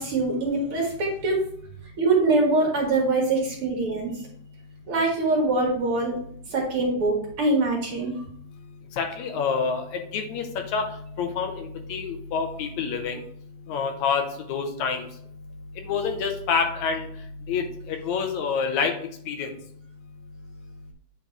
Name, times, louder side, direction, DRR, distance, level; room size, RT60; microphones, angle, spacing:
voice 1, 0.0-1.4 2.0-4.2 4.9-6.2 6.5-8.2, right 2 dB, 50° right, 0 dB, 2.1 m, -23 dB
voice 2, 9.0-9.9 10.1-10.9 11.2-13.2 13.7-15.0 15.9-17.1 17.5-18.9 19.3-19.5, left 5 dB, 75° left, 5 dB, 2.1 m, -27 dB
9.0 x 3.9 x 4.6 m, 0.64 s
omnidirectional pair, 3.5 m